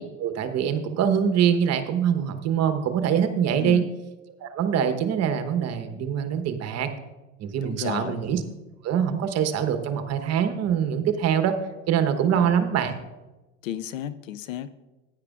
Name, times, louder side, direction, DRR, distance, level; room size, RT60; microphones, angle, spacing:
voice 1, 0.2-3.8 4.4-6.9 7.4-8.4 8.8-11.6 11.9-12.9, right 8 dB, 40° right, 8 dB, 1.1 m, -24 dB
voice 2, 3.6-3.9 7.6-8.2 12.2-12.5 13.6-14.8, left 11 dB, 80° left, 14 dB, 0.7 m, -34 dB
15.0 x 9.9 x 2.4 m, 1.1 s
hypercardioid pair, 85°, 38 cm